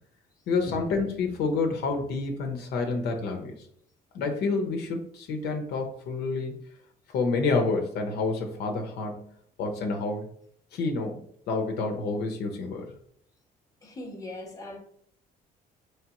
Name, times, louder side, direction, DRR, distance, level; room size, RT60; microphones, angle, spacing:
voice 1, 0.5-3.5 4.1-6.5 7.1-9.2 9.6-10.3 10.7-12.9, left 3 dB, 75° left, 0.8 m, -28 dB
voice 2, 13.8-14.8, left 1 dB, 20° left, 0.9 m, -39 dB
4.6 x 3.2 x 2.9 m
cardioid pair, 110°, 17 cm